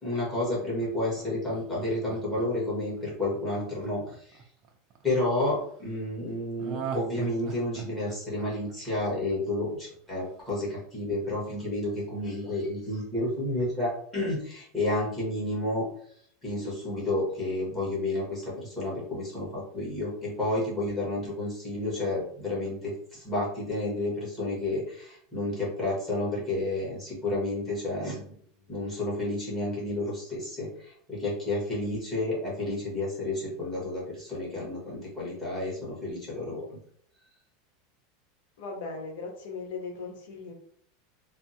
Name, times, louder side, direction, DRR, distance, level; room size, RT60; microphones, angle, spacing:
voice 1, 0.0-4.4 5.0-15.8 16.4-28.3 28.7-36.8, left 2 dB, 15° left, -7 dB, 1.3 m, -31 dB
Laughter, 0.8-5.0 6.6-9.6 9.9-10.0, right 7 dB, 35° right, 0.4 m, -40 dB
voice 2, 38.6-40.5, left 4 dB, 75° left, 2 dB, 0.9 m, -38 dB
3.4 x 2.0 x 2.7 m, 0.62 s
supercardioid pair, 165°, 0 cm